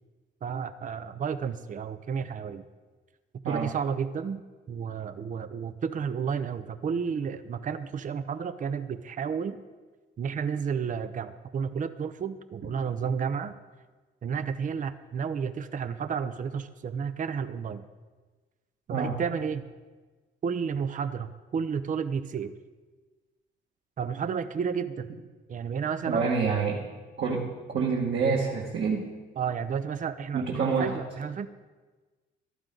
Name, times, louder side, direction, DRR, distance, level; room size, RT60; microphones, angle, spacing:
voice 1, 0.4-2.6 3.4-4.4 4.7-9.6 10.2-13.5 14.2-17.9 18.9-19.7 20.4-22.5 24.0-25.1 25.5-26.3 29.4-31.5, right 6 dB, 40° right, 12 dB, 0.6 m, -31 dB
voice 2, 26.1-26.8 27.2-29.1 30.3-31.0, right 5 dB, 65° right, -3 dB, 2.0 m, -27 dB
14.0 x 12.0 x 3.9 m, 1.3 s
cardioid pair, 90°, 20 cm